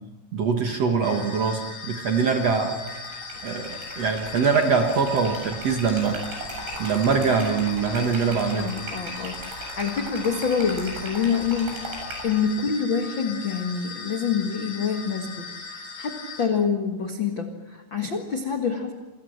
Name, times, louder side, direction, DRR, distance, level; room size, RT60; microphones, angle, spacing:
voice 1, 0.3-2.8 3.4-6.2 6.8-8.7, right 5 dB, 55° right, 4 dB, 1.9 m, -23 dB
sound 1, 1.0-16.5, left 5 dB, 50° left, 4.7 m, -39 dB
Liquid, 2.8-12.3, right 2 dB, 80° right, 9.9 m, -38 dB
voice 2, 8.5-11.8 12.2-18.9, left 6 dB, 85° left, 4 dB, 1.0 m, -27 dB
28.5 x 25.5 x 6.6 m, 1.1 s
omnidirectional pair, 5.2 m